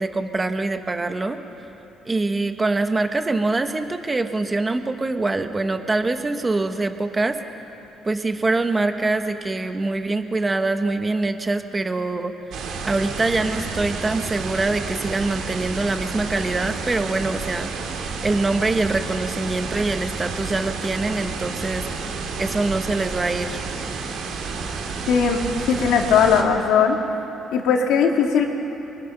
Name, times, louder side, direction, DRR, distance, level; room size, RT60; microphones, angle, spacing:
voice 1, 0.0-1.4 2.0-7.4 8.0-12.3 12.8-17.7 18.2-21.8 22.4-23.6, right 2 dB, 15° right, 7 dB, 1.2 m, -24 dB
sound 1, 12.5-26.4, right 4 dB, 70° right, 2.6 m, -30 dB
voice 2, 25.1-25.4 25.7-27.0 27.5-28.4, left 6 dB, 85° left, 1 dB, 2.7 m, -18 dB
29.5 x 24.0 x 5.9 m, 2.9 s
cardioid pair, 155°, 0 cm